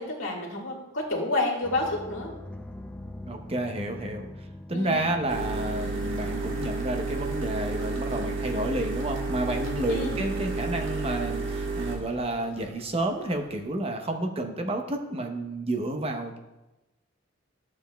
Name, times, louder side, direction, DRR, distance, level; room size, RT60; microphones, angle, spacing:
voice 1, 0.0-2.4 4.7-5.1 9.9-10.2, left 2 dB, 75° left, -2 dB, 1.8 m, -30 dB
sound 1, 1.6-6.7, left 1 dB, 5° left, 0.3 m, -43 dB
voice 2, 3.2-4.3 4.7-16.4, right 1 dB, 30° right, 4 dB, 0.8 m, -30 dB
sound 2, 5.3-13.5, right 3 dB, 85° right, 1.5 m, -31 dB
11.0 x 7.2 x 2.2 m, 0.99 s
head